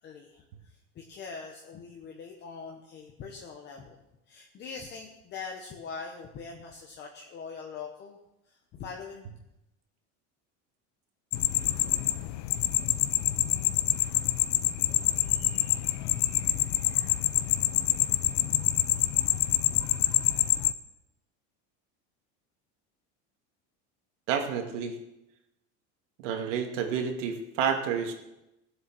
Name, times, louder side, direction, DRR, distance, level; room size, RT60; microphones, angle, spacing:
voice 1, 0.0-4.0 4.3-8.2 8.5-9.3, left 5 dB, 30° left, 1 dB, 1.1 m, -43 dB
sound 1, 11.3-20.7, left 14 dB, 50° left, 0.7 m, -26 dB
voice 2, 24.3-25.0 26.2-28.1, right 7 dB, 90° right, 3 dB, 2.4 m, -29 dB
17.0 x 7.9 x 6.1 m, 0.92 s
cardioid pair, 170°, 35 cm